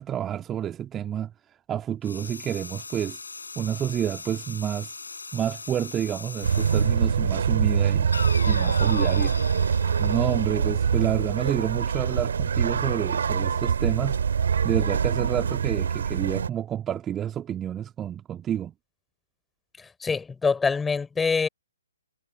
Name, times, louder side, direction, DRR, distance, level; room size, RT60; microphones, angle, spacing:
voice 1, 0.0-3.2 3.6-4.9 5.3-8.1 8.5-9.3 10.0-14.2 14.6-18.7, right 10 dB, 15° right, 2.0 m, -29 dB
sound 1, 2.0-7.0 8.1-11.0, left 4 dB, 65° left, 7.4 m, -38 dB
sound 2, 6.4-16.5, right 7 dB, 55° right, 2.7 m, -24 dB
voice 2, 19.8-21.5, left 5 dB, 5° left, 4.3 m, -25 dB
figure-of-eight pair, 130°, 0 cm